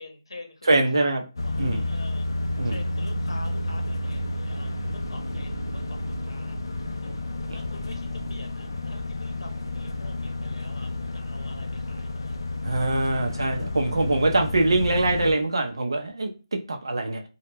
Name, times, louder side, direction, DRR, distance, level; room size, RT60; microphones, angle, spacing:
voice 1, 0.0-2.3 2.6-6.7 7.0-7.2 7.5-12.4, left 2 dB, 75° left, 0.8 m, -46 dB
voice 2, 0.7-1.2 1.6-1.8 2.6-2.8 12.6-17.2, right 2 dB, 60° right, 0.5 m, -23 dB
sound 1, 1.4-15.3, left 2 dB, 50° left, 0.4 m, -31 dB
2.2 x 2.1 x 3.1 m
hypercardioid pair, 180°, 3 cm